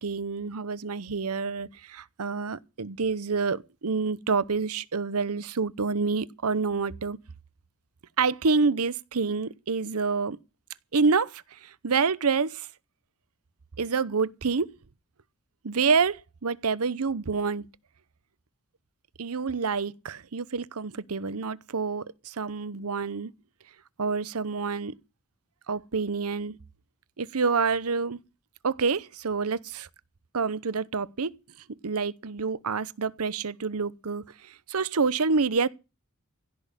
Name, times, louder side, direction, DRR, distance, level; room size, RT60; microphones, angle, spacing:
voice 1, 0.0-7.2 8.2-10.4 10.9-12.7 13.8-14.7 15.6-17.7 19.2-23.3 24.0-24.9 25.7-26.6 27.2-28.2 28.6-29.9 30.3-31.3 31.8-35.7, right 4 dB, 80° right, 0.8 m, -27 dB
16.5 x 6.4 x 9.8 m
head